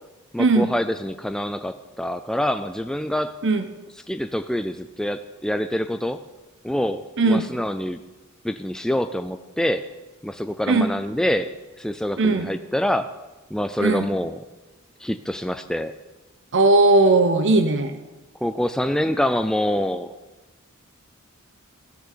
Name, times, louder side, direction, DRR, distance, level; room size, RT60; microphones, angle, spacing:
voice 1, 0.3-3.4 4.1-6.2 6.6-8.0 8.4-9.9 10.2-11.5 11.8-13.1 13.5-14.4 15.0-15.9 18.4-20.1, left 1 dB, 5° left, 9 dB, 0.4 m, -25 dB
voice 2, 7.2-7.5 10.7-10.9 12.2-12.5 13.8-14.1 16.5-18.0, right 2 dB, 60° right, 8 dB, 1.0 m, -18 dB
15.0 x 10.0 x 6.8 m, 1.1 s
head